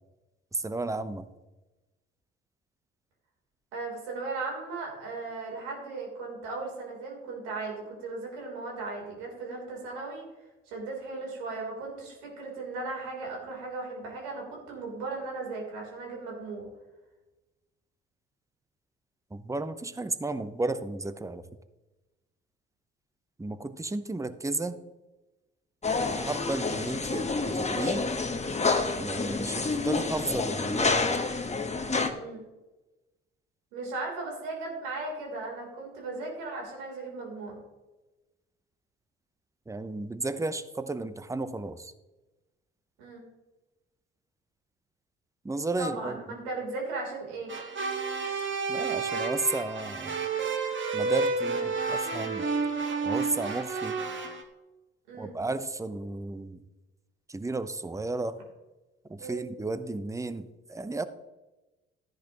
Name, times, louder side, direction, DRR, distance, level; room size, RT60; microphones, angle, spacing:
voice 1, 0.5-1.3 19.3-21.4 23.4-24.8 26.1-28.1 29.0-31.0 39.7-41.9 45.4-46.2 48.7-50.2 50.9-52.5 53.0-54.0 55.2-56.6 57.3-58.4 59.1-61.1, right 2 dB, 10° right, 13 dB, 0.8 m, -33 dB
voice 2, 3.7-10.3 10.7-16.7 29.0-29.3 32.1-32.4 33.7-37.6 43.0-43.2 45.8-47.5 55.1-55.3 59.2-59.4, right 3 dB, 75° right, -1 dB, 3.7 m, -37 dB
sound 1, 25.8-32.1, left 3 dB, 25° left, 1.3 m, -28 dB
sound 2, 47.5-54.4, right 4 dB, 40° right, 1.7 m, -30 dB
13.0 x 10.5 x 3.0 m, 1.1 s
hypercardioid pair, 55°, 29 cm